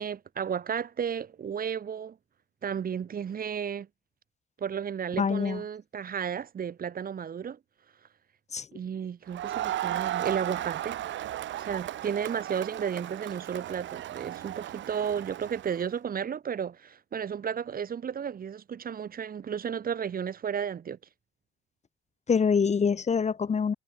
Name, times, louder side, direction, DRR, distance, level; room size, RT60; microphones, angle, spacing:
voice 1, 0.0-2.2 2.6-3.9 4.6-7.6 8.7-11.0 11.6-21.0, right 7 dB, 45° right, 1.4 m, -33 dB
voice 2, 5.2-5.6 8.5-8.7 22.3-23.7, left 6 dB, 35° left, 1.1 m, -25 dB
Crowd, 9.3-15.9, right 13 dB, 70° right, 1.0 m, -35 dB
cardioid pair, 90°, 20 cm